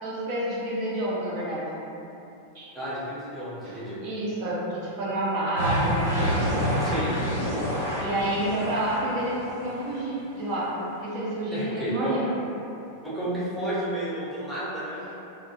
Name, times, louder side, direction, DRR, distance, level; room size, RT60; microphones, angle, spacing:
voice 1, 0.0-1.7 2.5-2.7 3.6-6.4 8.0-12.3 15.0-15.1, right 1 dB, 45° right, -8 dB, 0.6 m, -29 dB
voice 2, 2.7-4.0 6.8-7.1 11.5-12.2 13.0-15.1, right 1 dB, 5° left, -10 dB, 0.7 m, -32 dB
sound 1, 5.6-10.0, equal, 85° right, 0.9 m, -28 dB
2.1 x 2.1 x 2.8 m, 2.8 s
figure-of-eight pair, 90°, 0 cm